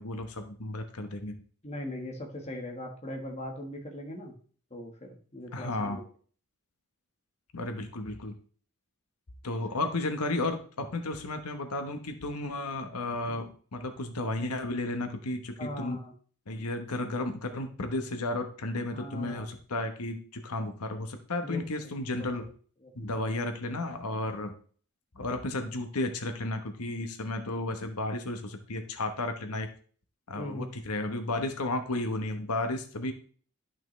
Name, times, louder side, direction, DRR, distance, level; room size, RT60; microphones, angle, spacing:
voice 1, 0.0-1.4 5.5-6.0 7.5-8.3 9.4-16.0 16.5-22.5 22.9-24.5 25.1-29.7 30.3-33.1, left 2 dB, 90° left, 6 dB, 1.2 m, -33 dB
voice 2, 1.6-4.3 4.7-6.0 13.3-13.4 15.6-16.1 18.9-19.5 21.4-22.0 22.8-23.1 30.3-30.7, left 1 dB, 30° left, 1 dB, 1.5 m, -40 dB
11.0 x 5.9 x 3.3 m, 0.44 s
head